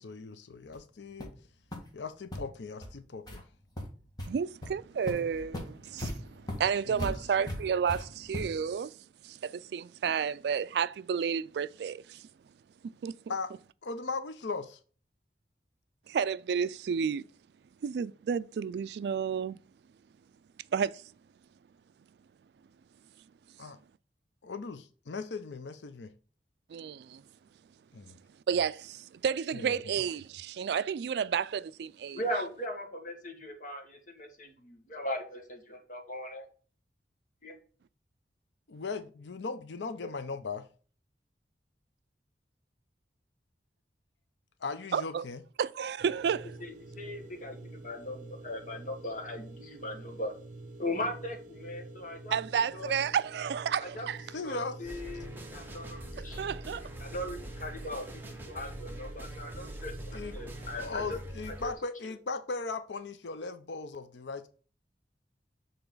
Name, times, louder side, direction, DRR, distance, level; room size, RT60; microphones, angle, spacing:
voice 1, 0.0-1.3 1.9-3.4 6.9-7.1 13.3-13.5 13.8-14.8 23.6-23.8 24.4-26.1 27.9-28.2 29.5-29.8 38.7-40.7 44.6-45.4 54.3-54.7 56.2-56.5 60.1-60.4 60.8-64.5, left 4 dB, 85° left, 0.6 m, -38 dB
sound 1, 0.7-0.8 1.2-1.4 1.7-1.8 2.3-2.4 2.8-2.9 3.3-3.4 3.8-4.3 4.6-4.7 5.1-8.7, left 1 dB, 25° left, 1.7 m, -39 dB
voice 2, 4.3-9.0 9.2-12.3 12.8-13.2 16.1-17.2 17.8-19.6 20.7-21.0 26.7-27.2 28.5-32.2 44.9-45.2 45.6-46.6 52.3-54.3 56.2-56.9, right 7 dB, 65° right, 0.3 m, -31 dB
voice 3, 32.1-36.5 37.4-37.6 46.6-50.3 50.8-52.4 52.7-52.9 53.8-54.1 54.4-56.4 57.0-61.2, left 1 dB, 50° left, 1.7 m, -39 dB
sound 2, 46.0-61.2, right 2 dB, 45° right, 0.8 m, -48 dB
sound 3, 54.8-61.7, right 1 dB, 10° right, 1.1 m, -44 dB
6.9 x 3.8 x 3.9 m
head